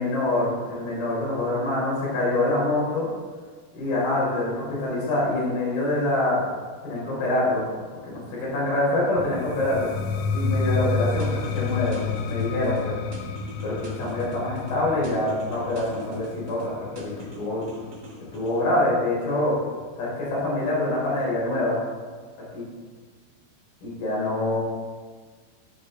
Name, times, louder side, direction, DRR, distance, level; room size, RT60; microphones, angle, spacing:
voice 1, 0.0-3.1 3.7-6.4 6.8-7.6 8.0-9.9 10.3-12.9 13.6-17.7 18.3-19.6 20.0-21.8 22.5-22.6 23.8-24.6, left 2 dB, 55° left, -6 dB, 5.7 m, -25 dB
sound 1, 9.2-19.0, left 5 dB, 85° left, 3.3 m, -30 dB
sound 2, 11.2-12.8 13.1-14.7 15.0-16.7 17.0-18.5, right 3 dB, 65° right, 1.0 m, -43 dB
12.5 x 9.9 x 3.9 m, 1.5 s
omnidirectional pair, 5.5 m